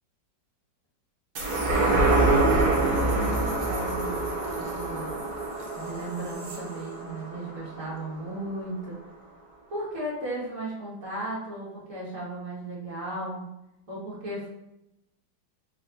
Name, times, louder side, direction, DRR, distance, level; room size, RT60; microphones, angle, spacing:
sound 1, 1.4-8.1 8.6-8.7, right 2 dB, 55° right, 1.4 m, -26 dB
voice 1, 1.7-4.2 4.6-5.2 5.7-9.0 9.7-13.4 13.9-14.5, right 1 dB, 40° right, -6 dB, 1.8 m, -35 dB
4.0 x 3.9 x 2.6 m, 0.87 s
omnidirectional pair, 2.2 m